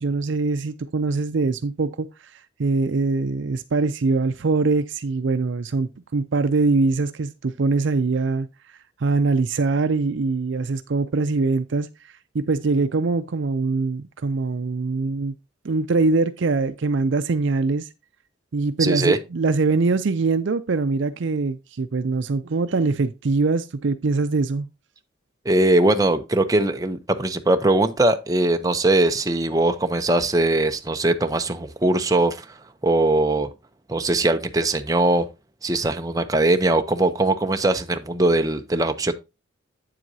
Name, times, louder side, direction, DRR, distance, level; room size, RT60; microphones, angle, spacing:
voice 1, 0.0-8.5 9.0-15.3 15.6-17.9 18.5-24.7, right 3 dB, 65° right, 0.5 m, -23 dB
voice 2, 18.8-19.2 25.4-33.5 33.9-35.3 35.6-39.1, right 2 dB, 15° right, 0.6 m, -21 dB
8.8 x 7.6 x 2.7 m
head